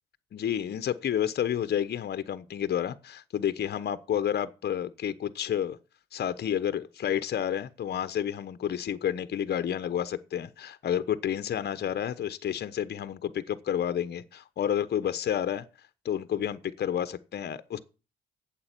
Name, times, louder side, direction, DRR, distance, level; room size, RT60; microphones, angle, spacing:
voice 1, 0.3-5.8 6.1-15.6 16.0-17.8, left 9 dB, 55° left, 1.0 m, -30 dB
8.7 x 7.7 x 9.1 m
cardioid pair, 90°, 20 cm